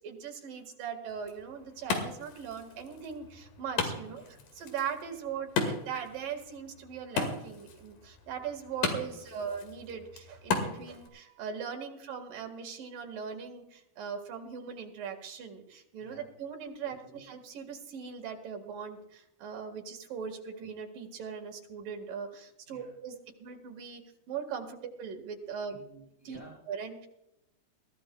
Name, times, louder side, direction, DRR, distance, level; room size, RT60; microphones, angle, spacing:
voice 1, 0.0-23.1 23.4-24.0 24.3-25.8 26.3-26.4 26.7-27.1, right 7 dB, 85° right, 3 dB, 3.5 m, -40 dB
Wood, 1.1-11.1, left 4 dB, 85° left, 3.7 m, -37 dB
voice 2, 9.1-9.4 9.7-9.8 16.0-16.3 16.8-17.2 22.7-22.9 25.6-26.5, right 1 dB, 20° left, -3 dB, 5.8 m, -53 dB
21.5 x 15.5 x 2.3 m, 0.81 s
omnidirectional pair, 3.8 m